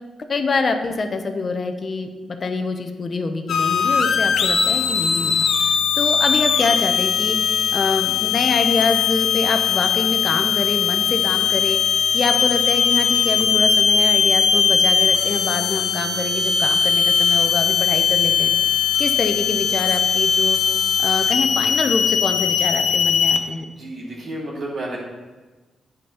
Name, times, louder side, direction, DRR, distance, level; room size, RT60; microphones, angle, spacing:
voice 1, 0.3-7.4 7.7-18.5 19.0-20.6 21.0-23.7, left 3 dB, 45° left, 7 dB, 0.9 m, -25 dB
sound 1, 3.5-23.4, left 7 dB, 80° left, 0.6 m, -19 dB
voice 2, 23.7-25.0, right 1 dB, 65° right, -5 dB, 2.5 m, -31 dB
8.4 x 5.3 x 5.7 m, 1.2 s
cardioid pair, 75°, 0 cm